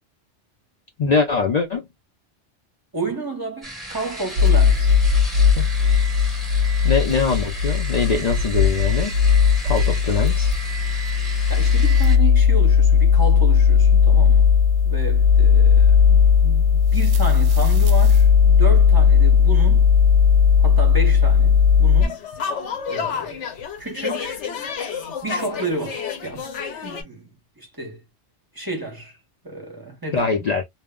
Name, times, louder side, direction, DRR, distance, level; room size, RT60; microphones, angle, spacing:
voice 1, 1.0-1.9 5.6-5.7 6.8-9.1 9.6-10.5 30.1-30.6, left 5 dB, 60° left, 0.4 m, -22 dB
voice 2, 2.9-5.0 11.5-14.5 14.8-19.9 20.6-22.2 22.9-23.4 23.8-24.4 25.2-26.5 26.8-27.3 27.6-28.0 28.5-29.1 29.4-30.5, right 2 dB, 25° right, 0.6 m, -31 dB
sound 1, 3.6-12.2, right 2 dB, ahead, 1.0 m, -35 dB
sound 2, 4.4-22.1, left 6 dB, 65° right, 0.7 m, -16 dB
sound 3, 22.0-27.0, left 6 dB, 90° left, 1.0 m, -30 dB
2.1 x 2.0 x 3.5 m
omnidirectional pair, 1.2 m